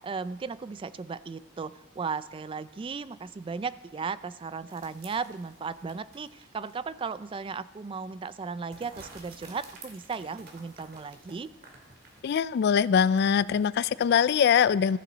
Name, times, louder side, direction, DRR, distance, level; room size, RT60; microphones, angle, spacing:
voice 1, 0.0-11.5, right 5 dB, 25° right, 16 dB, 0.3 m, -36 dB
sound 1, 4.7-6.9 7.3-7.4 8.7-12.3, right 3 dB, 55° right, 2.4 m, -51 dB
voice 2, 12.2-15.0, left 7 dB, 55° left, 19 dB, 0.3 m, -22 dB
14.5 x 13.5 x 3.9 m, 1.2 s
head